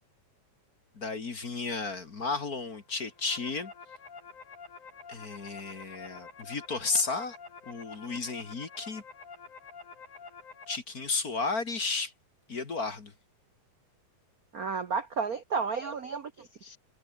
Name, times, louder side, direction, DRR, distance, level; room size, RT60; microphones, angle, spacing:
voice 1, 1.0-3.7 5.1-7.4 7.7-9.0 10.7-12.1 12.5-13.1, left 4 dB, 35° left, 2.1 m, -33 dB
sound 1, 2.9-10.8, left 5 dB, 80° left, 6.2 m, -48 dB
voice 2, 14.5-16.8, right 5 dB, 60° right, 0.9 m, -32 dB
omnidirectional pair, 3.4 m